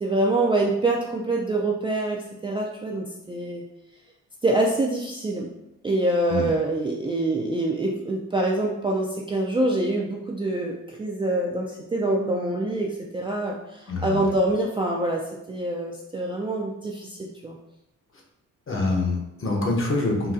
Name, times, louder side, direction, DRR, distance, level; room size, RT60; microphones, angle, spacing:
voice 1, 0.0-3.6 4.4-5.5 5.8-17.6, right 2 dB, 15° right, -2 dB, 0.3 m, -25 dB
voice 2, 13.9-14.3 18.7-20.3, left 2 dB, 40° left, 0 dB, 0.8 m, -25 dB
4.0 x 2.2 x 2.5 m, 0.85 s
cardioid pair, 90°, 34 cm